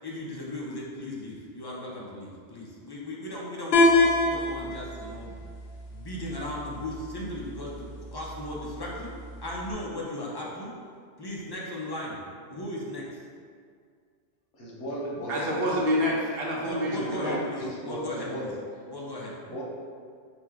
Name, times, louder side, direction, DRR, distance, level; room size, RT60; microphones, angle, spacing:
voice 1, 0.0-3.9 4.2-5.4 5.9-9.1 9.4-10.7 11.2-12.2 12.5-13.0 16.6-18.5 18.9-19.3, left 1 dB, 30° left, -5 dB, 0.5 m, -36 dB
sound 1, 3.7-9.7, left 2 dB, 65° left, 0.9 m, -28 dB
voice 2, 14.6-15.6 16.8-18.5 19.5-19.6, equal, 85° left, -4 dB, 1.2 m, -35 dB
voice 3, 15.3-17.4, equal, 60° right, -4 dB, 0.9 m, -27 dB
4.4 x 2.2 x 3.6 m, 2.1 s
omnidirectional pair, 1.1 m